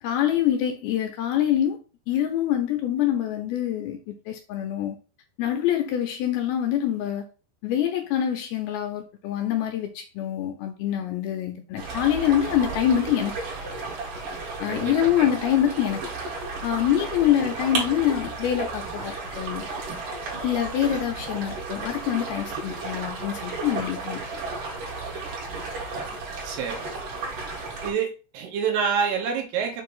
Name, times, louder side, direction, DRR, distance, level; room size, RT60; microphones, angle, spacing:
voice 1, 0.0-1.8 2.1-5.0 5.4-7.3 7.6-13.3 14.6-16.0 16.6-19.7 20.4-24.2, left 10 dB, 75° left, 2.4 m, -25 dB
sound 1, 11.8-27.9, right 3 dB, 55° right, 3.2 m, -33 dB
voice 2, 14.7-15.3 26.4-26.8 27.8-29.8, right 6 dB, 75° right, 3.4 m, -27 dB
7.3 x 3.0 x 5.4 m
omnidirectional pair, 5.0 m